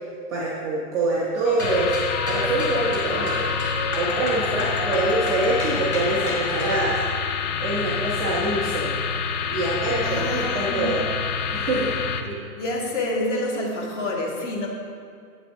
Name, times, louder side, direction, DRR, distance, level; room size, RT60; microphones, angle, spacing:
voice 1, 0.3-2.0 2.3-3.5 4.0-7.0 7.6-8.9 9.5-11.0 11.5-12.0, right 2 dB, 5° right, -7 dB, 0.5 m, -25 dB
sound 1, 1.4-6.9, left 2 dB, 35° left, 1.0 m, -31 dB
sound 2, 1.6-12.2, left 6 dB, 80° left, 0.9 m, -27 dB
voice 2, 10.0-11.0 12.2-14.7, left 2 dB, 50° left, -1 dB, 1.7 m, -28 dB
8.6 x 4.1 x 5.5 m, 2.3 s
hypercardioid pair, 160°, 45 cm